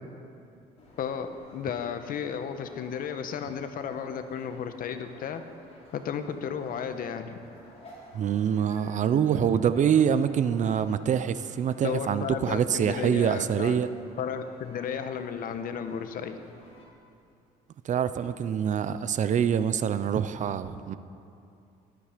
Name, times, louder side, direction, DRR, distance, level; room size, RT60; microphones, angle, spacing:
sound 1, 0.8-16.9, left 1 dB, 35° left, 4.2 m, -53 dB
voice 1, 1.0-5.4 5.9-7.4 11.8-13.7 14.2-16.4, left 7 dB, 55° left, 8 dB, 1.2 m, -33 dB
voice 2, 8.1-13.9 17.8-21.0, right 8 dB, 45° right, 13 dB, 0.6 m, -25 dB
16.5 x 13.0 x 5.1 m, 2.6 s
cardioid pair, 110°, 17 cm